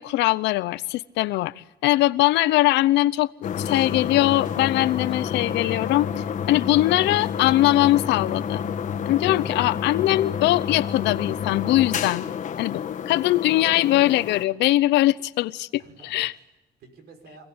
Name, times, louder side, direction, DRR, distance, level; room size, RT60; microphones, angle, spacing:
voice 1, 0.0-1.5 1.8-3.3 3.6-8.6 9.1-12.2 12.6-15.7 16.0-16.3, left 16 dB, 90° left, 0.7 m, -21 dB
sound 1, 3.4-14.4, left 7 dB, 45° left, 1.5 m, -29 dB
voice 2, 15.8-17.5, right 3 dB, 70° right, 6.3 m, -52 dB
26.5 x 17.5 x 8.7 m
cardioid pair, 125°, 18 cm